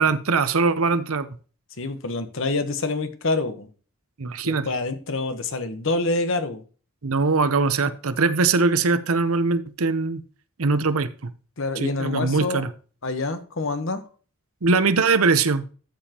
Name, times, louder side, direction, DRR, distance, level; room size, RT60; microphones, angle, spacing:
voice 1, 0.0-1.4 4.2-4.7 7.0-10.2 10.6-11.3 11.8-12.7 14.6-15.6, right 4 dB, 80° right, 0.8 m, -21 dB
voice 2, 1.8-3.7 4.4-6.6 11.6-12.6 13.0-14.0, left 3 dB, 65° left, 1.2 m, -26 dB
12.5 x 7.2 x 3.0 m
head